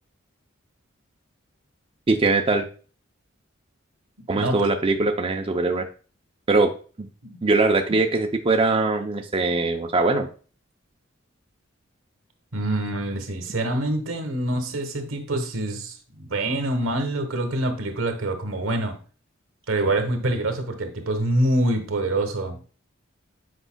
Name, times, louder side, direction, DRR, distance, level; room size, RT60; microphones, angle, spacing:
voice 1, 2.1-2.6 4.3-5.9 6.5-6.7 7.0-7.1 7.4-10.3, right 3 dB, 25° right, 4 dB, 0.5 m, -21 dB
voice 2, 12.5-19.0 19.7-22.6, right 1 dB, 90° right, 6 dB, 1.2 m, -25 dB
8.0 x 5.3 x 2.2 m, 0.38 s
head